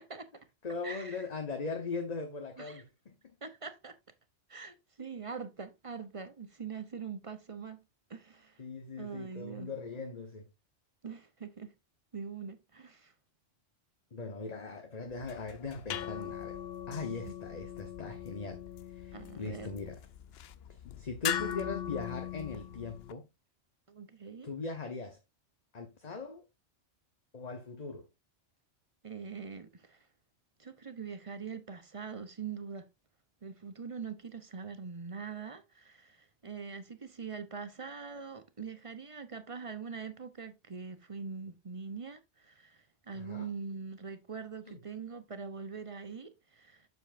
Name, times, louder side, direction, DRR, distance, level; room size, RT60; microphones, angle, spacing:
voice 1, 0.0-0.5 0.8-1.2 2.6-2.8 3.4-4.0 4.5-7.8 8.1-8.6 9.0-9.7 11.0-11.7 12.1-13.1 17.2-17.3 19.1-19.7 23.9-24.5 29.0-30.1 30.6-32.9 33.4-46.9, right 5 dB, 30° right, 0.8 m, -43 dB
voice 2, 0.6-3.4 8.6-10.5 14.1-16.6 16.9-20.0 20.7-23.3 24.4-25.2 25.7-26.4 27.3-28.1 43.1-43.5 44.7-44.8, left 4 dB, 35° left, 1.1 m, -40 dB
sound 1, 15.1-23.1, left 10 dB, 65° left, 0.8 m, -40 dB
8.2 x 7.2 x 2.6 m
omnidirectional pair, 1.2 m